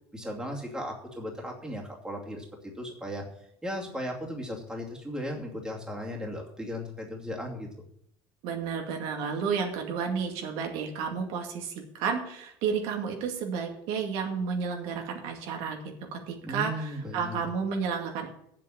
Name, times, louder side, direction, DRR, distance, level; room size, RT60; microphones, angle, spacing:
voice 1, 0.1-3.3 3.6-7.9 16.4-17.4, equal, 5° right, -2 dB, 2.5 m, -36 dB
voice 2, 8.4-18.3, right 6 dB, 75° right, 2 dB, 2.2 m, -32 dB
7.9 x 7.5 x 8.6 m, 0.73 s
cardioid pair, 140°, 10 cm